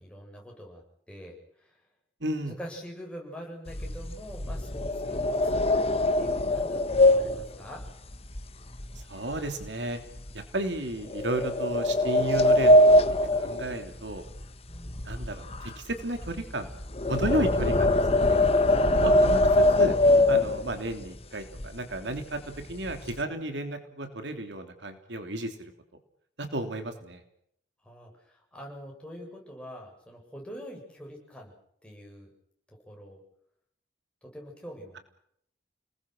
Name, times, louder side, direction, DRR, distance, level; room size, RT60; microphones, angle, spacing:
voice 1, 0.0-1.8 2.4-5.6 6.2-7.8 14.7-15.1 27.8-31.5 31.8-32.3 32.9-33.2 34.2-35.0, equal, 5° left, -1 dB, 7.8 m, -44 dB
voice 2, 2.2-2.5 8.9-10.0 10.3-14.2 15.0-16.7 17.1-18.4 19.0-20.0 20.3-25.7 26.4-27.2, right 1 dB, 90° right, 7 dB, 3.2 m, -33 dB
sound 1, 3.7-9.0 9.3-9.7 10.2-10.3 11.1-14.4 14.7-21.0 21.6-21.7 22.0-22.2 22.5-23.2, left 1 dB, 35° left, 1.3 m, -23 dB
30.0 x 20.0 x 6.4 m, 0.70 s
head